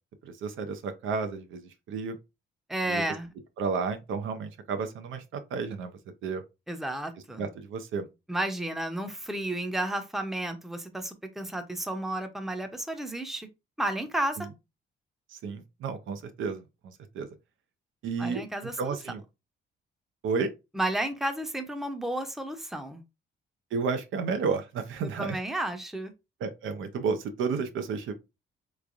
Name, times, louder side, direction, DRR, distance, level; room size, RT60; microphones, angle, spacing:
voice 1, 0.2-2.2 2.8-3.0 3.6-5.9 6.2-6.4 7.4-8.1 15.3-17.3 18.0-18.4 18.8-19.2 20.2-20.5 23.7-25.4 26.4-28.1, right 5 dB, 80° right, 0.7 m, -32 dB
voice 2, 2.7-3.3 6.7-7.5 8.3-13.5 13.8-14.4 18.2-19.0 20.7-23.0 25.2-26.1, right 1 dB, ahead, 0.6 m, -32 dB
3.5 x 3.1 x 2.5 m
cardioid pair, 90°, 20 cm